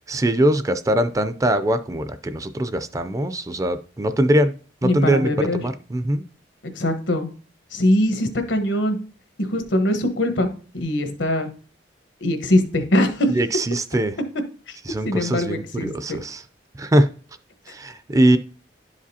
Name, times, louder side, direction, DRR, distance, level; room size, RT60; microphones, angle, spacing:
voice 1, 0.1-4.5 4.8-6.2 13.3-14.1 14.9-16.4 16.8-17.1 17.7-18.4, right 1 dB, 20° right, 10 dB, 0.3 m, -21 dB
voice 2, 4.8-5.7 6.7-7.3 7.7-9.0 9.4-10.5 10.7-11.5 12.2-13.3 14.7-14.8 15.0-16.2, left 1 dB, 85° left, 7 dB, 1.1 m, -22 dB
11.0 x 4.9 x 2.7 m, 0.41 s
head